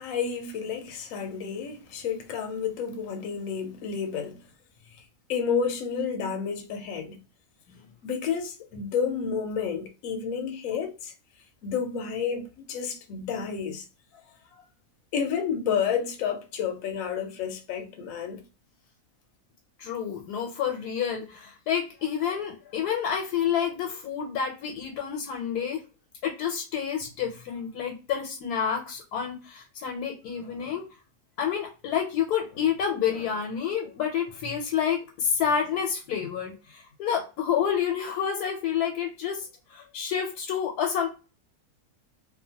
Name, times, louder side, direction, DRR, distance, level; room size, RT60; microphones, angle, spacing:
voice 1, 0.0-4.4 5.3-7.2 8.0-11.1 11.6-13.8 15.1-18.4, left 6 dB, 65° left, 0.9 m, -30 dB
voice 2, 19.8-25.8 26.2-30.9 31.4-41.1, left 8 dB, 85° left, 1.2 m, -29 dB
2.8 x 2.1 x 2.8 m
omnidirectional pair, 1.6 m